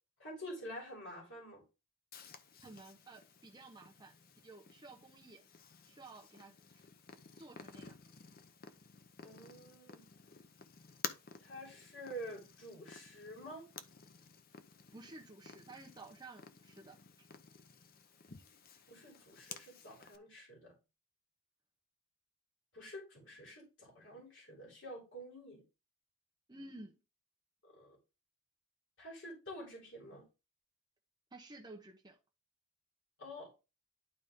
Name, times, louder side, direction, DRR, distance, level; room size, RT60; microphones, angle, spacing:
voice 1, 0.2-1.6 9.2-10.0 11.4-13.7 18.9-20.7 22.7-25.6 27.6-28.0 29.0-30.2 33.2-33.5, equal, 60° left, 3.4 m, -48 dB
Purr, 2.1-20.2, left 6 dB, 45° left, 0.7 m, -53 dB
voice 2, 2.6-4.1 4.4-5.4 5.9-6.5 7.3-8.0 14.9-17.3 26.5-27.0 31.3-32.2, right 2 dB, 20° right, 0.9 m, -53 dB
11.0 x 4.0 x 3.7 m
head